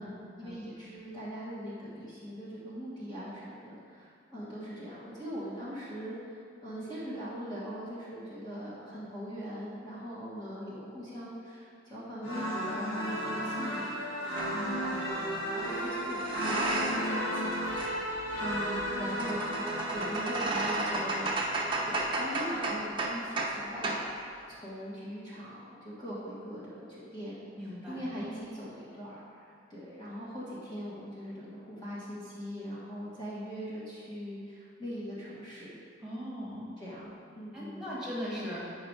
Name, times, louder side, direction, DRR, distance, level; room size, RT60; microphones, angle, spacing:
voice 1, 0.0-14.3 14.8-17.7 18.4-21.3 21.8-27.4 27.9-35.7 36.8-37.9, equal, 20° left, -10 dB, 1.5 m, -41 dB
sound 1, 12.2-22.6, equal, 85° left, 2.2 m, -34 dB
sound 2, 14.4-14.5 15.6-17.2 17.4-23.6 23.8-24.1, right 2 dB, 25° right, 0.8 m, -34 dB
voice 2, 14.5-15.0 27.6-28.0 36.0-36.7 37.5-38.7, equal, 5° right, -8 dB, 1.9 m, -39 dB
8.8 x 5.5 x 4.6 m, 2.3 s
head